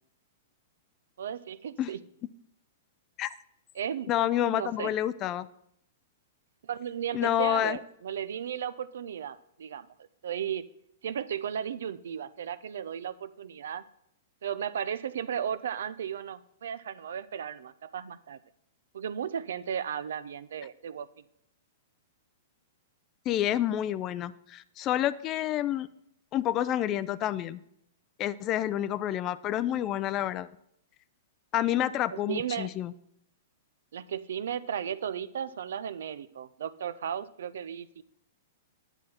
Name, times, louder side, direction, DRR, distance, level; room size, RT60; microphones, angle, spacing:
voice 1, 1.2-2.0 3.7-4.1 4.5-4.9 6.6-9.9 10.2-10.7 11.0-13.8 14.4-18.4 18.9-21.1 32.1-32.7 33.9-38.0, right 8 dB, 80° right, 15 dB, 0.6 m, -35 dB
voice 2, 4.1-5.5 7.1-7.8 23.3-25.9 26.3-27.6 28.2-30.5 31.5-32.9, left 12 dB, 25° left, 17 dB, 0.4 m, -28 dB
9.7 x 8.9 x 4.3 m, 0.73 s
hypercardioid pair, 155°, 0 cm